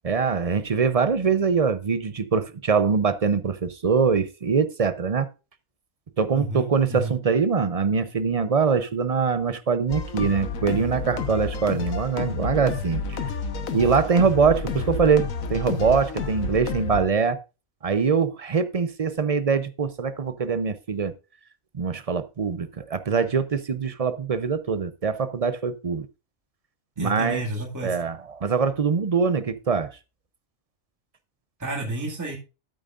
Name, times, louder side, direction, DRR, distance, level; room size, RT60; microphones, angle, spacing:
voice 1, 0.0-5.3 6.2-13.2 13.7-15.2 15.5-17.4 17.8-21.1 21.7-26.1 27.0-27.4 27.8-29.9, right 5 dB, 40° right, 0.5 m, -23 dB
voice 2, 6.3-7.1 27.0-28.0 31.6-32.4, right 2 dB, 15° right, 2.1 m, -31 dB
sound 1, 9.9-17.0, left 5 dB, 80° left, 1.5 m, -30 dB
13.0 x 8.9 x 2.5 m
omnidirectional pair, 1.4 m